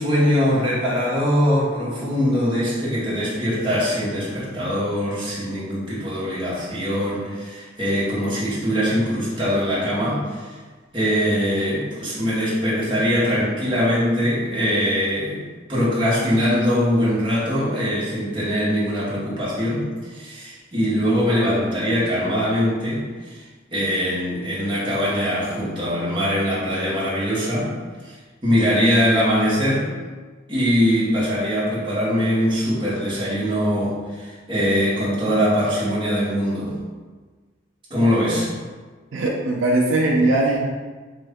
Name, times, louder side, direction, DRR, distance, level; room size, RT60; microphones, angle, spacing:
voice 1, 0.0-10.5 10.9-15.4 15.7-23.4 23.7-27.7 28.0-28.1 28.4-29.9 30.5-36.7 37.9-38.5, equal, 25° right, -8 dB, 1.0 m, -22 dB
voice 2, 39.1-40.7, right 2 dB, 75° right, -1 dB, 0.4 m, -20 dB
3.7 x 2.5 x 3.4 m, 1.4 s
head